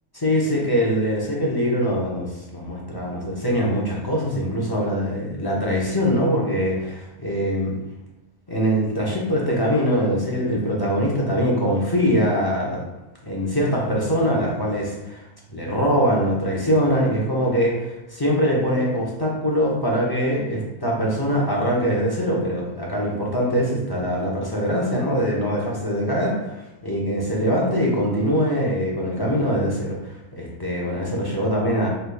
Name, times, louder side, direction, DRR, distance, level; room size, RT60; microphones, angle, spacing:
voice 1, 0.1-7.7 8.5-12.8 13.2-17.7 18.1-31.9, equal, 35° left, -4 dB, 0.4 m, -23 dB
5.3 x 3.3 x 2.2 m, 0.99 s
omnidirectional pair, 1.5 m